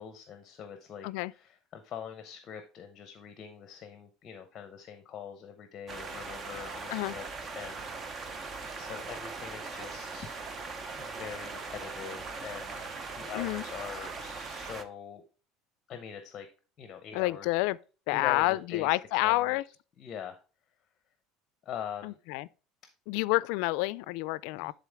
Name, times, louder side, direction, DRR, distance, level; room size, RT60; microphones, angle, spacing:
voice 1, 0.0-7.2 7.5-8.4 8.8-10.4 11.0-12.7 13.1-15.2 15.9-16.5 16.8-17.5 18.1-19.6 20.0-20.4 21.6-22.2 24.5-24.7, left 8 dB, 35° left, 0.8 m, -43 dB
sound 1, 5.9-14.8, right 4 dB, 25° right, 0.7 m, -40 dB
voice 2, 17.1-17.8 18.1-19.6 22.0-22.5 23.1-24.7, left 20 dB, 70° left, 0.3 m, -29 dB
10.5 x 3.9 x 3.5 m
cardioid pair, 150°, 0 cm